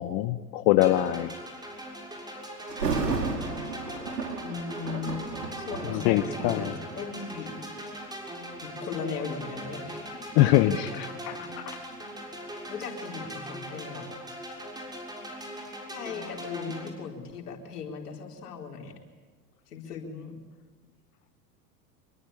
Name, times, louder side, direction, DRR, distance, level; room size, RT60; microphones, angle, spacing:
voice 1, 0.0-1.3 6.0-6.7 10.4-11.8 12.5-12.6, left 14 dB, 50° left, 11 dB, 1.2 m, -24 dB
sound 1, 0.8-16.9, equal, 10° right, 6.9 m, -40 dB
Thunder, 2.7-7.7 8.3-8.6 9.2-12.0 12.3-12.4, right 4 dB, 85° right, 3.8 m, -34 dB
voice 2, 4.4-5.2 5.6-6.7 7.0-7.6 8.6-10.1 10.6-11.0 12.7-14.1 15.9-19.0 19.7-20.4, left 5 dB, 75° left, 2 dB, 4.6 m, -37 dB
26.5 x 23.0 x 8.8 m, 1.3 s
figure-of-eight pair, 85°, 47 cm